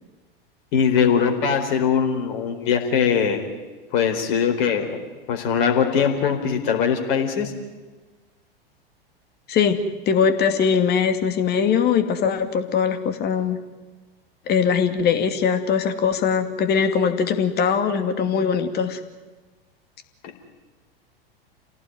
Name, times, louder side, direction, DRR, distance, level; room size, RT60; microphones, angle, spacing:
voice 1, 0.7-3.4 3.9-5.0 5.3-7.5, left 7 dB, 55° left, 4 dB, 4.3 m, -21 dB
voice 2, 9.5-9.8 10.1-13.6 14.5-19.0, left 6 dB, 35° left, 8 dB, 2.6 m, -21 dB
28.0 x 17.5 x 9.5 m, 1.3 s
figure-of-eight pair, 90°, 30 cm